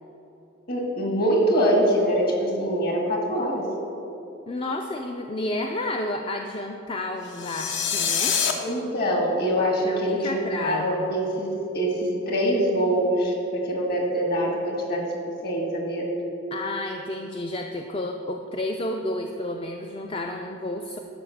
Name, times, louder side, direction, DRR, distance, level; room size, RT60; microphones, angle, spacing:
voice 1, 0.7-3.6 8.6-11.5 11.7-15.1 15.4-16.1, equal, 45° left, 0 dB, 2.0 m, -24 dB
voice 2, 4.5-8.4 9.8-11.1 16.5-21.0, left 1 dB, 25° left, 3 dB, 0.4 m, -31 dB
sound 1, 7.3-8.5, left 7 dB, 65° left, 1.0 m, -25 dB
12.0 x 5.2 x 7.1 m, 2.9 s
head